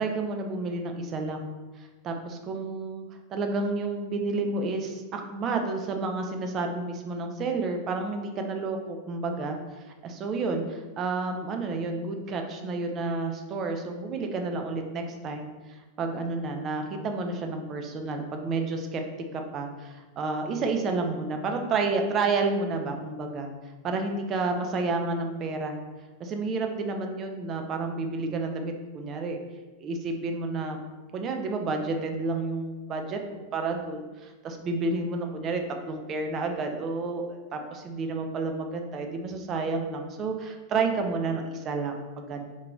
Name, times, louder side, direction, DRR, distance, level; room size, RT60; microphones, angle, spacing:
voice 1, 0.0-1.5 1.8-3.1 3.3-9.6 10.0-19.0 19.3-23.5 23.8-25.8 26.2-29.4 29.8-30.8 31.1-42.5, right 3 dB, 30° right, 4 dB, 0.5 m, -30 dB
4.4 x 2.9 x 2.3 m, 1.2 s
figure-of-eight pair, 90°, 0 cm